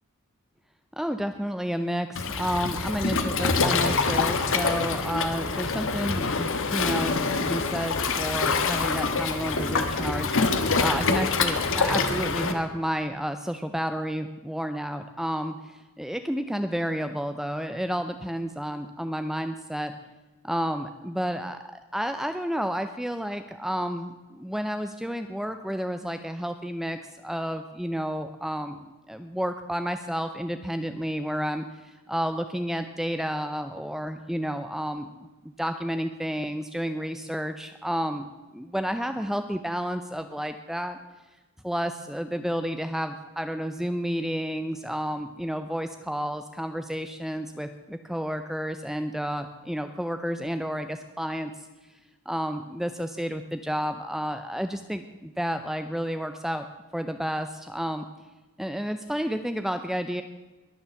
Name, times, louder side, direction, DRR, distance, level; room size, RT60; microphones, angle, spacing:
voice 1, 1.0-19.9 20.4-21.6 21.9-35.2 35.4-41.0 41.6-51.7 52.3-56.6 56.9-58.1 58.6-60.2, equal, ahead, 8 dB, 0.5 m, -31 dB
Waves surf, 2.1-12.5, left 4 dB, 60° left, 1.4 m, -25 dB
21.5 x 7.1 x 7.0 m, 1.2 s
head